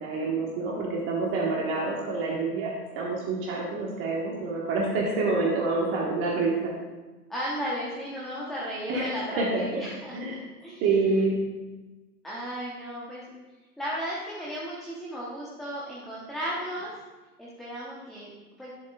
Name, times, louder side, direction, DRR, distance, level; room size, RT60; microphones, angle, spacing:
voice 1, 0.0-2.7 2.9-6.7 8.9-9.8 10.1-10.4 10.8-11.3, right 3 dB, 25° right, -3 dB, 1.4 m, -27 dB
voice 2, 7.3-10.9 12.2-13.3 13.8-16.9 17.4-18.3 18.6-18.7, equal, ahead, -6 dB, 1.0 m, -35 dB
11.0 x 10.5 x 2.4 m, 1.2 s
figure-of-eight pair, 120°, 48 cm